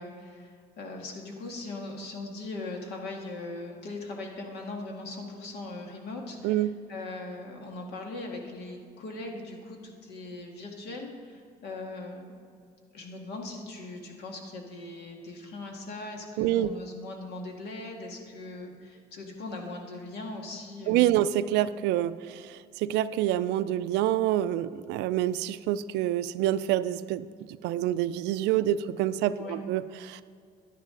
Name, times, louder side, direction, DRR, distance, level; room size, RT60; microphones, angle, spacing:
voice 1, 0.0-12.3 12.9-21.2 29.4-29.6, left 2 dB, 75° left, 1 dB, 1.9 m, -40 dB
voice 2, 6.4-6.8 16.4-16.7 20.9-27.3 27.6-30.2, right 13 dB, 90° right, 15 dB, 0.4 m, -27 dB
11.5 x 10.5 x 3.9 m, 2.3 s
cardioid pair, 110°, 17 cm